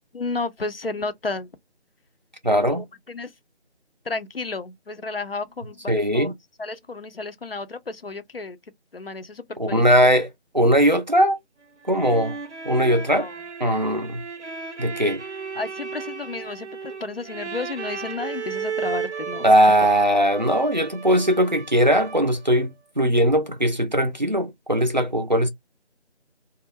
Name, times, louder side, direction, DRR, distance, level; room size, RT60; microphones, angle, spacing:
voice 1, 0.1-1.5 2.7-3.3 4.1-6.3 6.6-8.6 8.9-9.8 13.1-13.4 15.5-19.5, left 3 dB, 60° left, 0.4 m, -32 dB
voice 2, 2.4-2.8 5.9-6.3 9.6-10.3 10.5-11.4 11.9-12.4 12.7-13.3 13.6-14.2 14.8-15.2 19.4-25.5, equal, 45° right, 0.4 m, -19 dB
sound 1, 11.6-22.5, right 5 dB, 85° right, 0.7 m, -35 dB
2.2 x 2.0 x 3.0 m
figure-of-eight pair, 170°, 34 cm